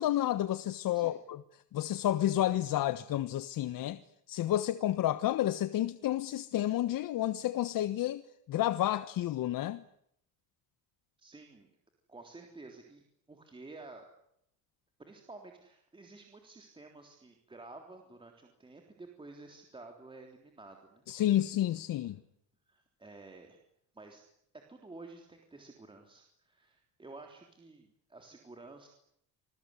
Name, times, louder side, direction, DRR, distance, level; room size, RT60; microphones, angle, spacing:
voice 1, 0.0-1.4 1.7-4.0 4.3-8.2 8.5-9.8 21.1-22.2, left 13 dB, 60° left, 1.3 m, -30 dB
voice 2, 11.2-11.7 12.1-14.1 15.0-21.0 22.0-22.1 22.7-23.6 23.9-24.2 24.7-28.9, right 3 dB, 15° right, 3.5 m, -51 dB
27.5 x 21.5 x 9.9 m
cardioid pair, 180°, 38 cm